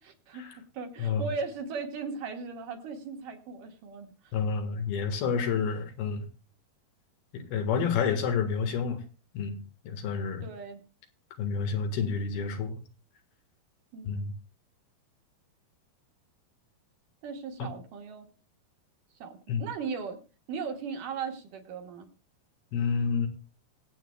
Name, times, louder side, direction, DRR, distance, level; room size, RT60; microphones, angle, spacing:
voice 1, 0.0-0.5 0.7-4.3 10.4-10.8 13.9-14.3 17.2-18.3 19.2-20.2 20.5-22.1, right 5 dB, 65° right, 4 dB, 2.8 m, -37 dB
voice 2, 4.3-6.3 7.3-9.0 9.4-9.6 9.9-10.5 11.4-12.8 14.1-14.3 17.6-17.7 19.5-19.6 22.7-23.3, left 6 dB, 80° left, 5 dB, 3.5 m, -29 dB
25.0 x 8.4 x 2.3 m, 0.33 s
omnidirectional pair, 4.3 m